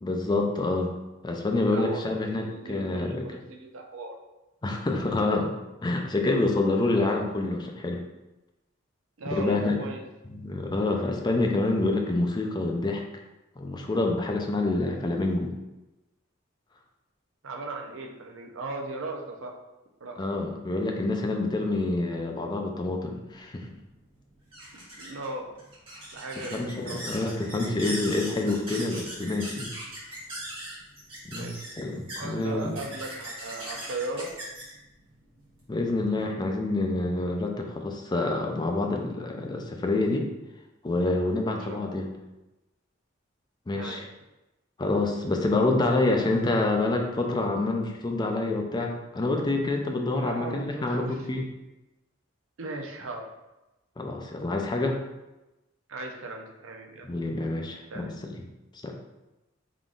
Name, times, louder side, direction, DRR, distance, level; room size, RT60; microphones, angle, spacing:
voice 1, 0.0-0.9 1.2-3.4 4.6-5.5 5.8-8.0 9.3-9.8 10.3-13.0 13.6-15.5 20.2-23.7 26.5-29.7 31.3-32.8 35.7-40.3 40.8-42.1 43.7-44.0 44.8-51.4 54.0-55.0 57.0-58.4 58.8-59.0, left 2 dB, 20° left, 2 dB, 0.4 m, -27 dB
voice 2, 1.6-4.1 9.2-10.0 17.4-19.6 20.0-20.2 24.7-25.5 26.1-27.0 31.3-31.6 32.2-34.3 41.6-42.1 43.7-44.0 50.2-51.3 52.6-53.3 55.9-57.1 57.9-58.1, right 2 dB, 80° right, 2 dB, 0.6 m, -37 dB
sound 1, 23.4-36.3, right 1 dB, 30° right, 1.5 m, -41 dB
3.7 x 3.5 x 2.5 m, 1.0 s
head